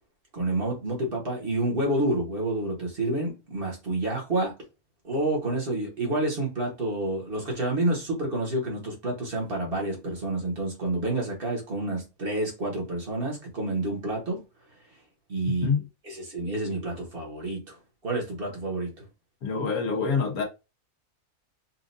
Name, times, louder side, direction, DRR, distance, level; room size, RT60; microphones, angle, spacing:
voice 1, 0.3-4.5 5.0-14.4 15.3-15.7 16.0-17.7 18.0-18.9, right 1 dB, 40° right, 1.5 m, -29 dB
voice 2, 15.5-15.9 19.4-20.4, left 5 dB, 85° left, 1.6 m, -26 dB
4.3 x 2.6 x 2.6 m
omnidirectional pair, 1.5 m